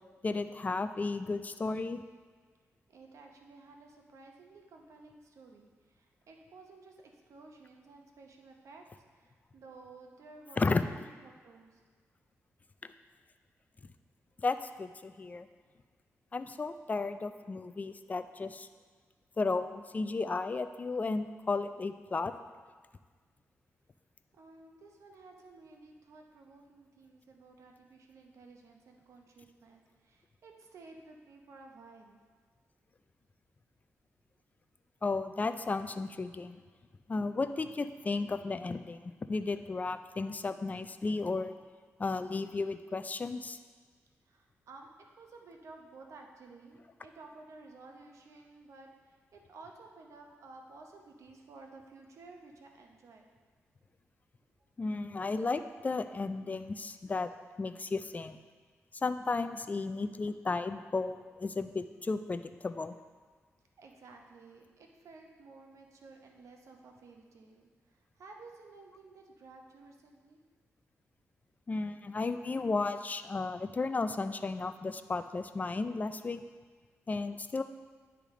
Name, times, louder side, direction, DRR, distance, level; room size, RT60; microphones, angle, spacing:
voice 1, 0.2-2.0 10.6-10.8 12.8-12.9 14.4-15.5 16.3-18.7 19.4-22.3 35.0-36.6 37.1-41.5 42.0-43.6 54.8-57.3 57.6-58.4 59.0-63.0 71.7-76.4 77.1-77.6, left 3 dB, 30° left, 10 dB, 0.4 m, -34 dB
voice 2, 2.9-8.8 9.1-11.8 24.3-32.2 44.2-53.3 63.8-70.4, right 3 dB, 70° right, 2 dB, 0.8 m, -54 dB
9.9 x 3.4 x 3.7 m, 1.5 s
cardioid pair, 70°, 5 cm